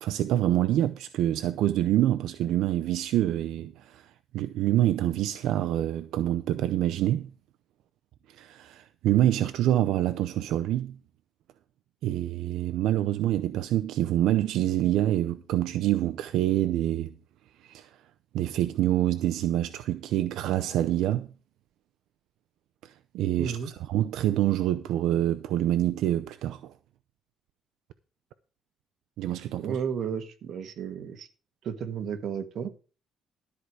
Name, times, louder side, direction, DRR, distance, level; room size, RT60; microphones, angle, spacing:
voice 1, 0.0-7.3 8.3-11.0 12.0-17.1 17.6-17.9 18.3-21.3 22.8-26.7 29.2-29.8, right 13 dB, 85° right, 0.6 m, -26 dB
voice 2, 23.4-23.7 29.6-31.3 31.6-32.7, right 7 dB, 55° right, 1.5 m, -33 dB
13.0 x 4.8 x 7.8 m
cardioid pair, 150°, 0 cm